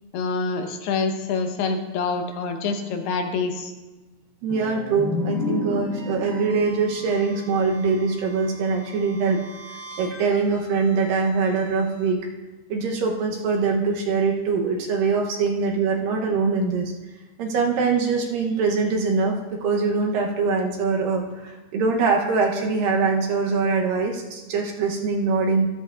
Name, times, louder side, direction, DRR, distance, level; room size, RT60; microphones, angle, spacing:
voice 1, 0.1-3.7, left 4 dB, 85° left, 5 dB, 3.0 m, -26 dB
voice 2, 4.4-9.4 10.0-12.2 12.7-16.9 17.4-25.7, right 4 dB, 75° right, 1 dB, 2.4 m, -23 dB
sound 1, 4.5-8.2, left 3 dB, 5° right, 2.0 m, -31 dB
sound 2, 5.8-12.1, right 2 dB, 50° right, 2.9 m, -45 dB
13.5 x 13.0 x 2.4 m, 1.1 s
omnidirectional pair, 4.5 m